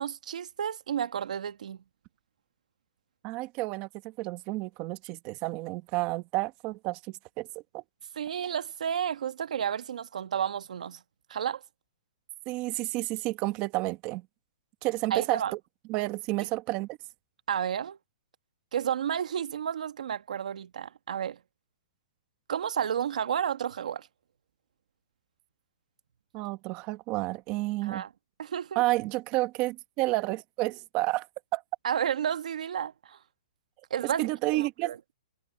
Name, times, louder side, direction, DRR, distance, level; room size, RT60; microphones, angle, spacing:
voice 1, 0.0-1.8 8.2-11.0 11.3-11.6 15.1-15.5 17.5-18.0 18.7-21.4 22.5-24.1 27.8-28.1 28.4-28.8 31.8-33.2 33.9-34.2 34.5-35.0, right 8 dB, 65° right, 1.7 m, -31 dB
voice 2, 3.2-7.8 12.5-14.3 14.8-15.6 15.9-17.0 26.3-28.0 28.7-31.3 31.5-31.6 34.0-35.0, right 19 dB, 25° right, 1.0 m, -30 dB
hypercardioid pair, 170°, 4 cm